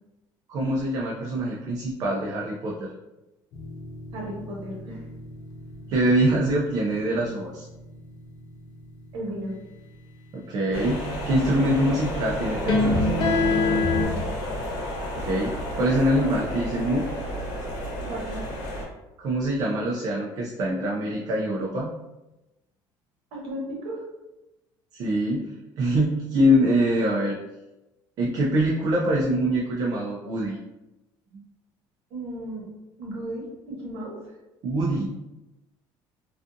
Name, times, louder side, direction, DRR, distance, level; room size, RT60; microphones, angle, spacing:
voice 1, 0.5-2.9 5.9-7.7 10.3-13.1 15.2-17.1 19.2-22.0 24.9-27.4 28.2-30.6 31.3-31.4 34.6-35.1, right 1 dB, 40° right, -3 dB, 0.4 m, -24 dB
sound 1, 3.5-10.4 12.5-14.1, left 3 dB, 55° left, 0.5 m, -28 dB
voice 2, 4.1-5.0 9.1-9.5 14.0-14.3 18.0-18.5 23.3-24.0 32.1-32.6 33.0-34.3, right 1 dB, 80° right, -3 dB, 1.0 m, -35 dB
sound 2, 10.7-18.8, equal, 85° left, 0.9 m, -31 dB
2.5 x 2.4 x 2.5 m, 0.99 s
cardioid pair, 160°, 9 cm